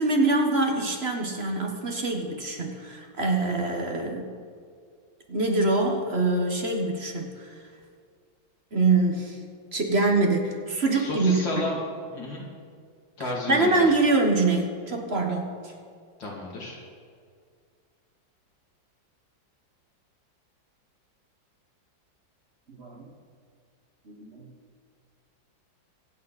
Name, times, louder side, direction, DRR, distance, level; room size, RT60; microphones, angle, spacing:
voice 1, 0.0-4.3 5.3-7.5 8.7-9.4 9.7-11.7 13.5-15.7 22.7-23.1 24.1-24.5, right 3 dB, 40° right, 2 dB, 1.3 m, -24 dB
voice 2, 10.9-11.8 12.1-12.4 13.2-14.0 16.2-16.8, left 2 dB, 75° left, -3 dB, 3.3 m, -32 dB
25.0 x 8.5 x 4.1 m, 2.1 s
omnidirectional pair, 2.0 m